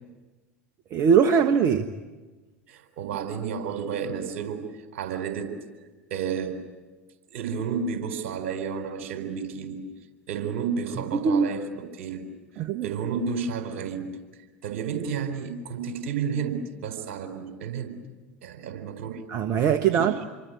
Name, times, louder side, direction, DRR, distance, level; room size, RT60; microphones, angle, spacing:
voice 1, 0.9-1.9 11.1-11.5 12.6-12.9 19.3-20.2, right 7 dB, 45° right, 8 dB, 1.4 m, -21 dB
voice 2, 2.7-4.7 4.9-5.5 6.1-6.6 7.3-9.8 10.3-12.2 12.8-14.1 14.6-18.0 18.4-19.2 19.9-20.0, right 6 dB, 65° right, 7 dB, 4.3 m, -31 dB
27.0 x 23.5 x 9.3 m, 1.2 s
figure-of-eight pair, 75°, 7 cm